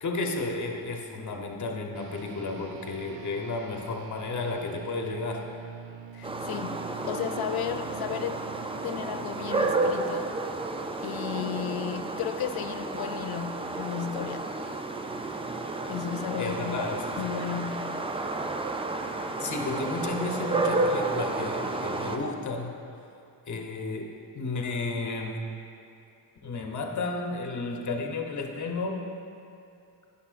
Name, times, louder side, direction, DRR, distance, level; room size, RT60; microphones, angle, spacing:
voice 1, 0.0-5.5 16.4-17.3 19.4-22.7 23.5-25.5 26.4-29.1, left 3 dB, 40° left, 2 dB, 0.9 m, -33 dB
sound 1, 1.9-11.7, right 8 dB, 75° right, 0.5 m, -46 dB
voice 2, 6.1-8.4 8.8-10.4 11.0-14.6 15.8-16.8 17.2-18.0, left 10 dB, 60° left, 9 dB, 0.5 m, -34 dB
sound 2, 6.2-22.2, right 2 dB, 15° right, 0.4 m, -31 dB
9.9 x 5.6 x 2.5 m, 2.6 s
cardioid pair, 60°, 43 cm